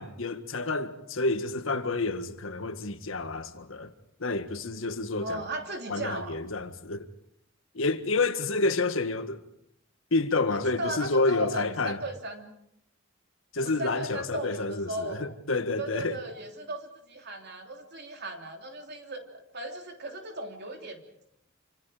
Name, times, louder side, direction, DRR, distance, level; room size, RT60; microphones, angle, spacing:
voice 1, 0.0-3.9 4.2-5.4 5.9-7.1 7.7-9.4 10.1-12.0 13.5-16.2, left 3 dB, 75° left, 1.7 m, -29 dB
voice 2, 5.2-6.4 10.5-12.6 13.6-15.3 15.8-21.0, right 1 dB, 55° right, 3.2 m, -37 dB
27.0 x 26.0 x 5.0 m
head